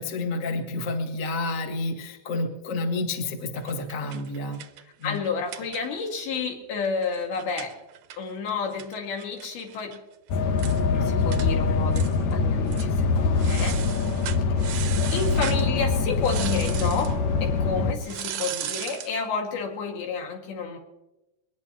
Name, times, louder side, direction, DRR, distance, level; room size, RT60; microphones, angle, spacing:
voice 1, 0.0-4.6 5.0-5.2, left 2 dB, 45° left, 3 dB, 1.0 m, -30 dB
sound 1, 3.6-6.2 6.5-6.6 6.8-10.0 10.3-10.4 10.6-10.8 11.3-11.5 11.9-12.3 12.7-12.9 13.4-15.7 16.2-17.2 18.0-19.2, right 11 dB, 80° right, 1.6 m, -37 dB
voice 2, 4.8-7.8 8.2-10.0 10.6-12.1 12.3-13.8 15.1-20.8, left 5 dB, 90° left, 2 dB, 4.0 m, -30 dB
sound 2, 10.3-17.9, left 4 dB, 70° left, 1.8 m, -24 dB
22.5 x 19.0 x 3.0 m, 0.99 s
omnidirectional pair, 4.2 m